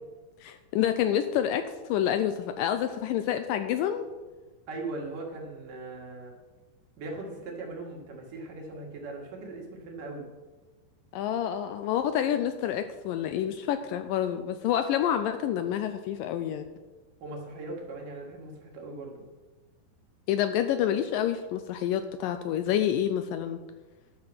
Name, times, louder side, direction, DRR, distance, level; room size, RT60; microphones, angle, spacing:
voice 1, 0.4-1.6 1.9-4.1 11.1-16.7 20.3-23.6, left 10 dB, 80° left, 9 dB, 2.1 m, -28 dB
voice 2, 4.7-6.3 7.0-10.3 17.2-19.2, right 2 dB, 65° right, 0 dB, 3.3 m, -39 dB
11.5 x 6.8 x 6.1 m, 1.2 s
omnidirectional pair, 4.3 m